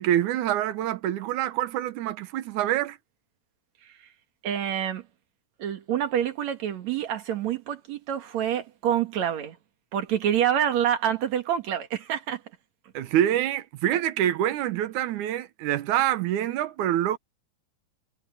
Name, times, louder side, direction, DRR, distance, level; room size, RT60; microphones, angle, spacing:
voice 1, 0.0-3.0 12.9-17.2, right 12 dB, 85° right, 2.5 m, -26 dB
voice 2, 4.4-5.0 5.6-9.6 9.9-12.4, right 10 dB, 70° right, 3.0 m, -27 dB
omnidirectional pair, 3.4 m